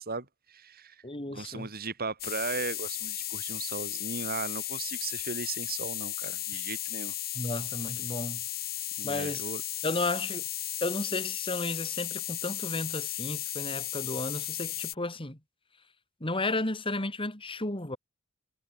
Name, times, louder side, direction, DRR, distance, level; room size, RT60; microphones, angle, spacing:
voice 1, 0.0-7.1 9.0-9.6, right 4 dB, 45° right, 3.4 m, -37 dB
voice 2, 1.0-1.7 6.5-6.6 7.3-8.4 9.0-9.5 9.8-10.4 10.8-15.4 16.2-18.0, left 2 dB, 25° left, 3.3 m, -33 dB
sound 1, 2.2-14.9, left 13 dB, 45° left, 4.1 m, -35 dB
head